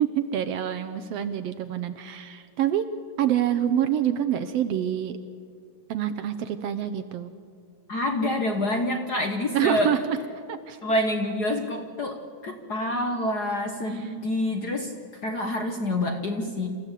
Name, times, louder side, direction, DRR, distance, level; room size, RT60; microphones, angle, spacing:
voice 1, 0.0-2.9 3.2-5.2 5.9-7.3 9.5-10.2 10.5-10.8 13.9-14.1, right 10 dB, 70° right, 11 dB, 1.7 m, -26 dB
voice 2, 7.9-10.0 10.8-14.9 15.2-16.7, left 1 dB, 50° left, 4 dB, 1.3 m, -27 dB
28.0 x 15.0 x 8.3 m, 2.1 s
omnidirectional pair, 3.3 m